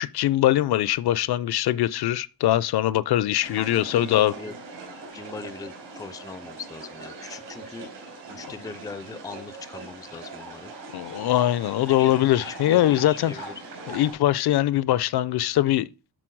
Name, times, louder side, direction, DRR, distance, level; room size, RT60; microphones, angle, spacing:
voice 1, 0.0-4.3 10.9-13.5 13.9-15.9, left 13 dB, 65° left, 0.5 m, -22 dB
sound 1, 3.4-14.1, right 3 dB, 80° right, 4.2 m, -41 dB
voice 2, 3.6-4.6 5.1-7.9 8.3-10.7 11.9-13.5, left 4 dB, 10° left, 0.4 m, -40 dB
12.5 x 4.2 x 4.6 m
wide cardioid pair, 155°, 42 cm